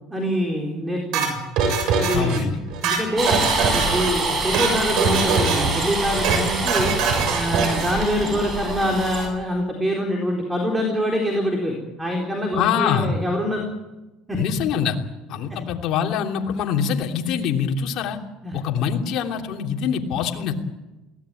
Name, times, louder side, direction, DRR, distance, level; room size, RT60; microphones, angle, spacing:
voice 1, 0.1-1.4 2.0-2.5 2.8-3.3 3.7-6.9 7.3-13.6 14.3-14.4 15.5-15.6 18.4-18.6, equal, 10° right, 1 dB, 4.2 m, -25 dB
sound 1, 1.1-2.4 2.7-4.1 4.4-4.7 5.0-5.8 6.1-6.4 6.7-7.9, right 5 dB, 65° right, 6.8 m, -22 dB
voice 2, 2.1-2.6 12.5-13.1 14.4-15.0 15.3-18.2 18.5-20.5, left 7 dB, 55° left, 1 dB, 3.0 m, -24 dB
sound 2, 3.2-9.3, right 3 dB, 35° right, 7.7 m, -26 dB
22.5 x 17.5 x 9.2 m, 1.1 s
cardioid pair, 130°, 0 cm